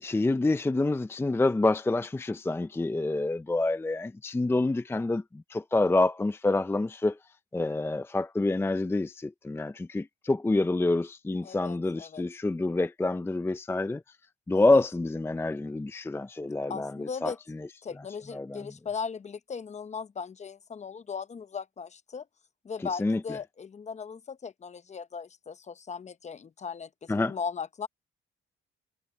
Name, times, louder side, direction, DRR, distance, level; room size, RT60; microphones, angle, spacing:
voice 1, 0.0-7.2 7.5-14.0 14.5-17.6 18.3-18.7 22.8-23.2 27.1-27.3, left 2 dB, 10° left, 0.5 m, -27 dB
voice 2, 11.4-12.2 14.6-14.8 16.7-17.4 17.8-22.3 22.6-27.9, left 6 dB, 35° left, 0.9 m, -38 dB
cardioid pair, 90°, 20 cm